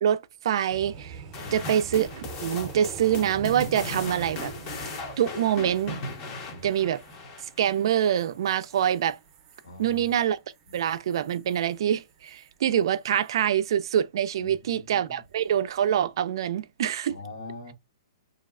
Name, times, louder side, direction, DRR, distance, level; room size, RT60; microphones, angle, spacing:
voice 1, 0.0-1.2 1.5-2.1 2.4-4.5 5.2-5.9 6.6-7.0 7.4-9.2 9.8-10.4 10.7-17.2, right 10 dB, 60° right, 0.3 m, -25 dB
sound 1, 0.7-12.5 12.9-13.3 15.2-15.6, right 6 dB, 25° right, 0.6 m, -45 dB
sound 2, 1.3-7.9, left 3 dB, 30° left, 0.6 m, -38 dB
voice 2, 1.4-1.7 6.5-6.6 9.6-10.1 14.4-15.2 17.1-17.7, left 3 dB, 75° left, 1.2 m, -42 dB
3.0 x 2.6 x 2.4 m
hypercardioid pair, 155°, 3 cm